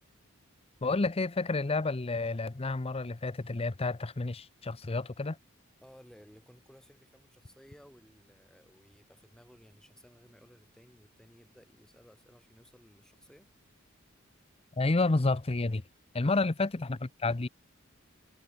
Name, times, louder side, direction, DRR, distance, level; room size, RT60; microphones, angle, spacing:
voice 1, 0.8-5.4 14.8-15.8 16.1-17.5, left 3 dB, 30° left, 0.7 m, -30 dB
voice 2, 5.8-13.5 16.2-16.4, equal, 5° left, 5.4 m, -58 dB
head